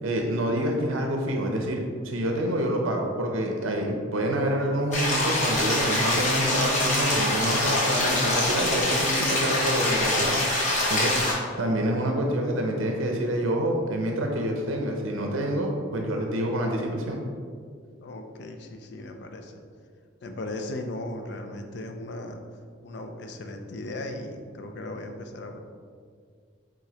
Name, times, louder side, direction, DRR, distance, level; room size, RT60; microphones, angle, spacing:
voice 1, 0.0-10.3 10.9-11.2 11.6-17.2, right 1 dB, 80° right, 1 dB, 0.6 m, -27 dB
sound 1, 4.9-11.3, left 1 dB, 35° left, 0.9 m, -25 dB
voice 2, 18.0-19.6 20.2-22.4 22.8-25.6, left 1 dB, 55° left, 5 dB, 0.4 m, -37 dB
4.8 x 3.8 x 2.8 m, 2.1 s
head